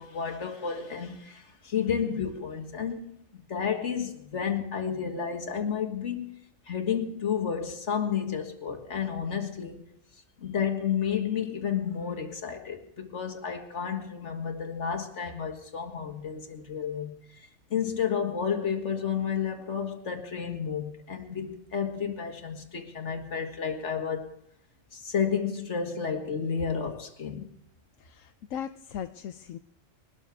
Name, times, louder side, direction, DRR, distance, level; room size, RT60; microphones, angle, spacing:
voice 1, 0.0-3.2 3.5-6.3 6.7-9.8 10.4-24.3 24.9-27.5, left 7 dB, 65° left, 2.0 m, -31 dB
voice 2, 28.0-29.6, left 9 dB, 80° left, 1.1 m, -38 dB
22.0 x 12.5 x 3.5 m
omnidirectional pair, 1.3 m